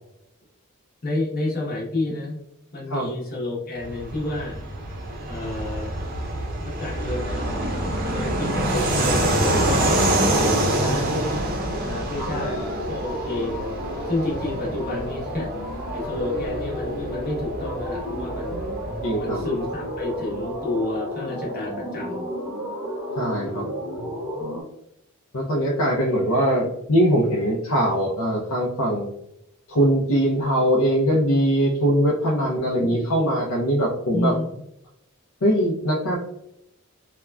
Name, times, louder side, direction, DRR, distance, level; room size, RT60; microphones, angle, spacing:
voice 1, 1.0-2.4 2.7-4.6 5.3-5.9 6.6-7.5 8.1-11.3 11.7-12.6 12.9-13.6 14.0-15.5 15.9-18.7 19.2-22.3 32.4-32.5 32.8-33.1 34.1-34.6, left 2 dB, 45° left, -4 dB, 1.0 m, -30 dB
Fixed-wing aircraft airplane, 3.8-20.0, right 1 dB, 45° right, 0.5 m, -26 dB
voice 2, 12.2-12.7 19.0-19.4 23.2-23.7 25.3-29.1 29.7-34.3 35.4-36.2, equal, 80° left, -4 dB, 0.6 m, -22 dB
sound 1, 12.3-24.6, equal, 10° right, 0.8 m, -32 dB
3.5 x 2.2 x 2.2 m, 0.80 s
head